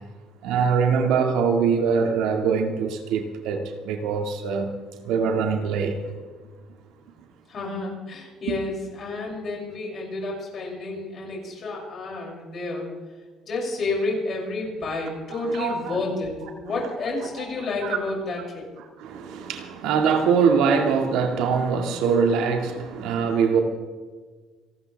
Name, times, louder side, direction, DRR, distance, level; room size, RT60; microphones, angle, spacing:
voice 1, 0.4-6.0 15.6-15.7 17.8-18.0 19.0-23.6, right 6 dB, 75° right, 2.1 m, -23 dB
voice 2, 7.5-12.9 13.4-18.7, left 2 dB, 35° left, 6.7 m, -30 dB
29.0 x 12.5 x 3.5 m
cardioid pair, 150°, 0 cm